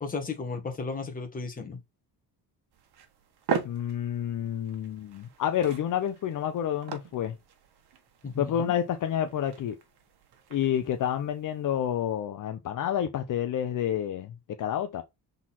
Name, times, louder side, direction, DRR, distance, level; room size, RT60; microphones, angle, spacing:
voice 1, 0.0-1.8 8.2-8.7, left 4 dB, 20° left, 1.5 m, -34 dB
sound 1, 2.7-12.2, right 7 dB, 70° right, 1.4 m, -40 dB
voice 2, 3.6-7.3 8.4-9.8 10.5-14.3 14.6-15.0, left 10 dB, 50° left, 0.7 m, -29 dB
6.1 x 4.0 x 4.2 m
cardioid pair, 170°, 40 cm